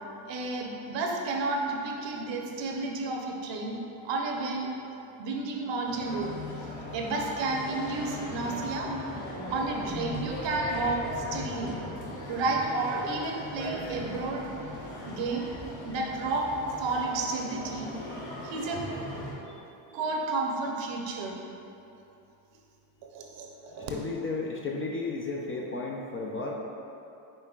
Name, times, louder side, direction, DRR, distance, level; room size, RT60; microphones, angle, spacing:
voice 1, 0.3-3.8 4.0-4.7 5.2-6.4 6.9-8.9 9.5-11.8 12.3-14.4 15.1-15.5 15.8-16.5 16.8-17.9 18.4-18.8 19.9-21.4 23.0-23.9, right 3 dB, 60° right, 0 dB, 0.8 m, -31 dB
sound 1, 5.8-19.3, left 1 dB, 70° left, 1.5 m, -38 dB
voice 2, 23.8-26.6, left 3 dB, 30° left, -1 dB, 0.4 m, -33 dB
5.4 x 4.0 x 2.4 m, 2.8 s
supercardioid pair, 75°, 49 cm